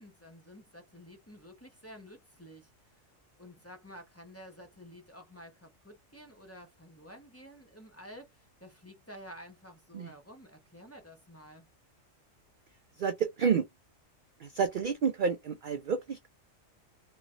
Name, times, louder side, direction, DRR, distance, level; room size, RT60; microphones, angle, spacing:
voice 1, 0.0-3.1 3.4-11.7, equal, 10° left, 1.0 m, -51 dB
voice 2, 13.0-13.7 14.4-16.3, right 6 dB, 55° right, 0.5 m, -29 dB
3.4 x 3.0 x 3.7 m
omnidirectional pair, 1.4 m